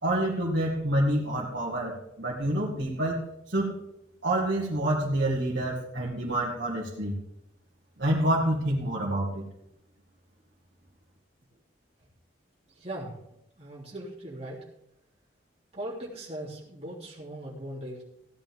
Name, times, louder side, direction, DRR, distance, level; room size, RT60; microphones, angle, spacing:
voice 1, 0.0-3.2 3.5-3.7 4.2-7.1 8.0-9.4, right 1 dB, 65° right, -6 dB, 2.3 m, -27 dB
voice 2, 12.7-13.1 13.6-14.6 15.7-18.0, right 1 dB, 30° right, -6 dB, 3.3 m, -39 dB
16.5 x 10.5 x 3.7 m, 0.80 s
head